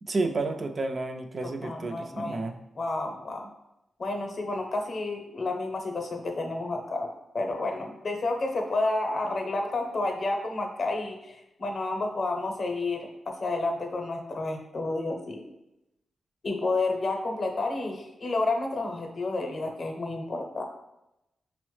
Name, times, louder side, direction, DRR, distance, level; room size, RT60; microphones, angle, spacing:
voice 1, 0.0-2.6, right 3 dB, 40° right, 6 dB, 0.3 m, -31 dB
voice 2, 1.4-2.4 2.8-3.5 4.0-7.1 7.3-15.4 16.4-20.6, left 2 dB, 50° left, 3 dB, 0.6 m, -30 dB
5.3 x 2.0 x 3.1 m, 0.89 s
cardioid pair, 95°, 0 cm